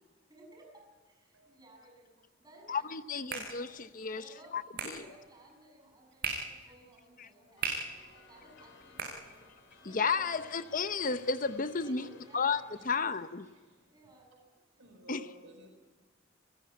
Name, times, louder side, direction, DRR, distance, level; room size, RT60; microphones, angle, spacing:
voice 1, 0.3-2.1 2.4-4.5 4.9-10.8 11.7-13.0 13.9-14.6, right 1 dB, 20° right, 6.9 m, -57 dB
voice 2, 2.7-4.2 4.5-5.0 7.2-7.3 9.8-12.1 12.3-12.6 12.8-13.3 15.1-15.2, left 5 dB, 45° left, 0.8 m, -32 dB
sound 1, 2.8-9.8, right 4 dB, 55° right, 6.4 m, -42 dB
sound 2, 7.6-13.8, left 4 dB, 70° left, 4.3 m, -59 dB
voice 3, 12.8-13.2 13.4-13.9 14.7-15.7, right 1 dB, 85° right, 4.7 m, -56 dB
29.5 x 14.0 x 9.5 m
head